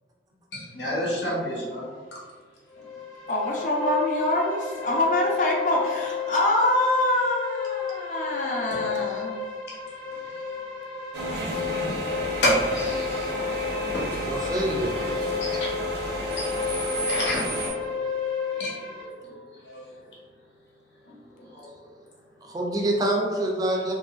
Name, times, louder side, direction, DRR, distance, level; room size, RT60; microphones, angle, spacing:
voice 1, 0.5-2.2 2.8-2.9 9.7-9.8 10.1-10.2 12.4-13.4 13.7-14.4 15.4-15.5 16.3-18.0 18.5-19.8 21.1-21.2 21.5-21.7, equal, 80° left, -5 dB, 0.8 m, -30 dB
sound 1, 2.7-19.0, left 6 dB, 30° left, 0.8 m, -32 dB
voice 2, 3.3-9.4, left 1 dB, 45° left, -1 dB, 0.5 m, -25 dB
sound 2, 11.1-17.7, right 1 dB, 70° right, 0.5 m, -31 dB
voice 3, 14.3-15.3 22.4-23.9, right 1 dB, 20° right, 0 dB, 0.3 m, -26 dB
2.9 x 2.4 x 2.3 m, 1.5 s
head